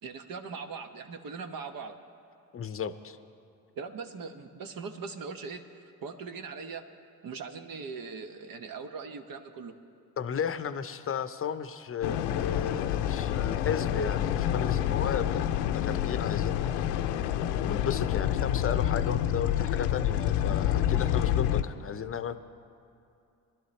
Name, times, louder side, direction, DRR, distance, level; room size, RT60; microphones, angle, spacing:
voice 1, 0.0-2.0 3.8-5.7 6.0-6.8 7.2-9.7, right 5 dB, 50° right, 7 dB, 1.2 m, -40 dB
voice 2, 2.5-3.2 10.2-16.9 17.7-22.4, left 7 dB, 30° left, 12 dB, 0.7 m, -34 dB
sound 1, 12.0-21.6, left 11 dB, 70° left, 0.7 m, -28 dB
21.5 x 11.5 x 3.3 m, 2.6 s
hypercardioid pair, 55°, 43 cm